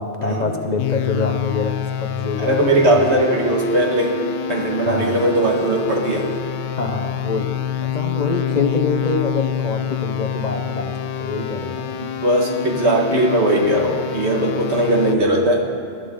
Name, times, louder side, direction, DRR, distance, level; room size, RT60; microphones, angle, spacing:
voice 1, 0.0-2.6 3.0-3.2 4.8-5.3 6.8-7.5 7.8-12.0, left 3 dB, 40° left, 4 dB, 0.9 m, -25 dB
sound 1, 0.8-15.2, left 9 dB, 80° left, 0.9 m, -27 dB
voice 2, 2.4-6.3 11.9-15.7, right 1 dB, 75° right, 1 dB, 2.0 m, -19 dB
19.5 x 12.5 x 3.8 m, 2.3 s
omnidirectional pair, 1.1 m